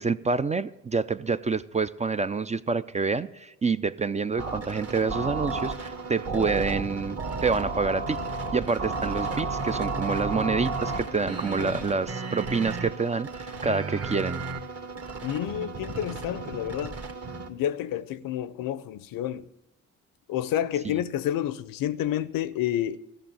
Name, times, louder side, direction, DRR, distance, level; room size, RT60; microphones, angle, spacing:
voice 1, 0.0-8.2 8.5-14.4 20.8-21.0, right 4 dB, 20° right, 0.4 m, -27 dB
sound 1, 4.4-17.5, right 3 dB, 40° right, 1.5 m, -33 dB
voice 2, 15.2-17.0 17.5-19.5 20.3-23.0, left 11 dB, 65° left, 0.7 m, -29 dB
14.5 x 6.3 x 9.0 m
supercardioid pair, 60°, 36 cm